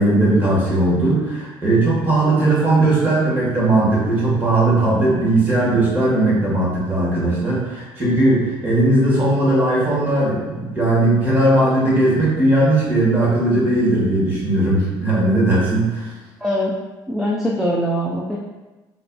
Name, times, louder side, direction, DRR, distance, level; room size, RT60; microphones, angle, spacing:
voice 1, 0.0-16.1, right 2 dB, 20° right, -7 dB, 1.3 m, -18 dB
voice 2, 16.4-16.7 17.1-18.4, equal, 5° right, -5 dB, 0.3 m, -22 dB
4.0 x 2.6 x 2.2 m, 1.1 s
cardioid pair, 130°, 10 cm